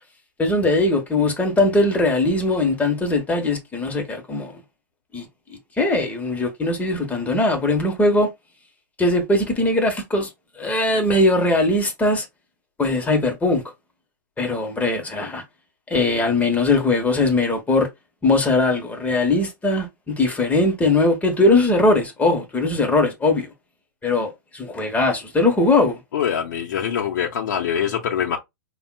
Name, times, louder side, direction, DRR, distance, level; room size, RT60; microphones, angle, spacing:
voice 1, 0.4-4.5 5.1-5.3 5.8-8.3 9.0-10.3 10.6-12.2 12.8-13.6 14.4-15.4 15.9-17.9 18.2-23.5 24.0-26.0, left 2 dB, 15° left, 1.1 m, -20 dB
voice 2, 26.1-28.4, left 8 dB, 70° left, 0.7 m, -24 dB
5.4 x 2.3 x 2.3 m
hypercardioid pair, 110°, 11 cm